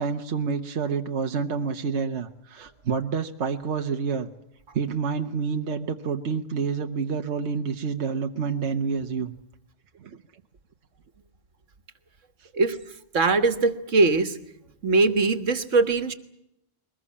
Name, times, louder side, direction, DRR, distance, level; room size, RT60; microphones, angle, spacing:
voice 1, 0.0-4.3 4.7-9.3 10.0-10.2, right 5 dB, 65° right, 5 dB, 1.3 m, -28 dB
voice 2, 13.1-14.3 14.8-16.1, right 3 dB, 85° right, 11 dB, 1.9 m, -21 dB
22.5 x 20.5 x 8.6 m, 0.83 s
omnidirectional pair, 1.3 m